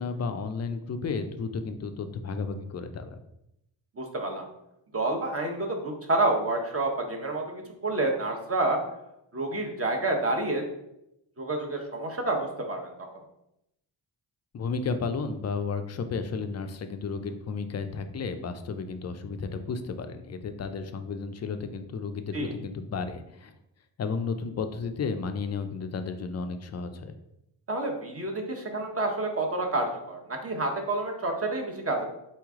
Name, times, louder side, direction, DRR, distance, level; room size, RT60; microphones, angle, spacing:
voice 1, 0.0-3.2 14.5-23.5 24.0-27.2, left 4 dB, 35° left, 8 dB, 0.4 m, -33 dB
voice 2, 4.0-4.5 4.9-8.8 9.3-10.6 11.4-12.9 22.3-22.5 27.7-32.1, right 2 dB, 30° right, 1 dB, 0.9 m, -29 dB
4.1 x 3.1 x 3.6 m, 0.83 s
cardioid pair, 95°, 45 cm